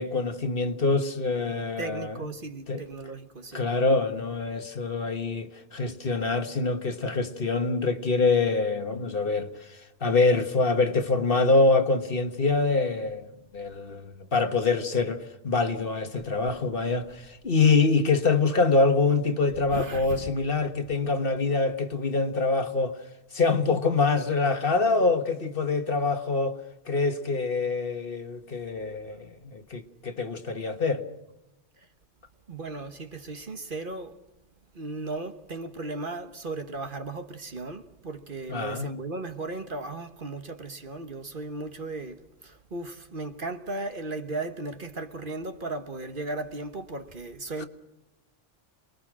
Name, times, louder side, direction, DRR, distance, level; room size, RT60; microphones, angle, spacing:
voice 1, 0.0-2.1 2.7-2.8 3.5-23.0 23.3-26.6 26.8-31.1 38.5-38.9 47.6-47.7, left 3 dB, 50° left, 1.6 m, -25 dB
voice 2, 1.8-3.6 19.7-20.3 32.5-34.2 34.7-47.7, right 2 dB, 45° right, 1.5 m, -36 dB
28.0 x 21.0 x 6.2 m
omnidirectional pair, 1.3 m